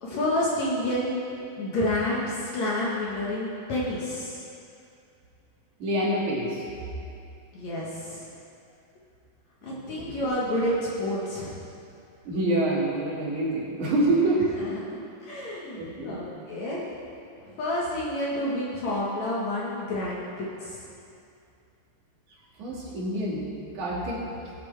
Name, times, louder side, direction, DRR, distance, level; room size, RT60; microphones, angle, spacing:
voice 1, 0.0-4.4 7.5-8.3 9.6-11.6 14.9-16.9 17.4-20.9 24.3-24.4, left 1 dB, 60° left, -5 dB, 2.2 m, -29 dB
voice 2, 5.8-6.7 9.7-10.2 12.2-14.4 15.7-16.2 22.6-23.5 23.7-24.2, right 1 dB, 60° right, -6 dB, 3.4 m, -26 dB
18.0 x 8.4 x 3.3 m, 2.5 s
omnidirectional pair, 4.2 m